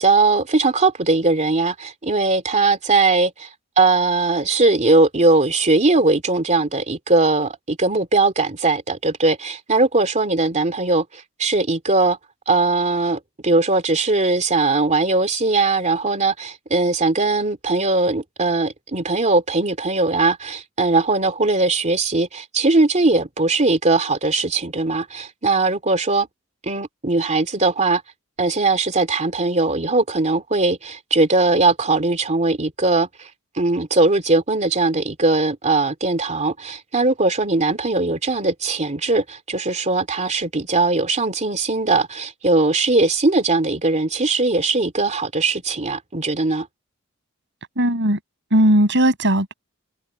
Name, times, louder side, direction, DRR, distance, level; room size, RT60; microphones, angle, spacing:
voice 1, 0.0-3.5 3.8-12.2 12.5-26.3 26.6-28.0 28.4-33.3 33.6-46.7, right 3 dB, 35° right, 2.7 m, -19 dB
voice 2, 47.8-48.2 48.5-49.5, right 1 dB, 55° right, 7.7 m, -17 dB
head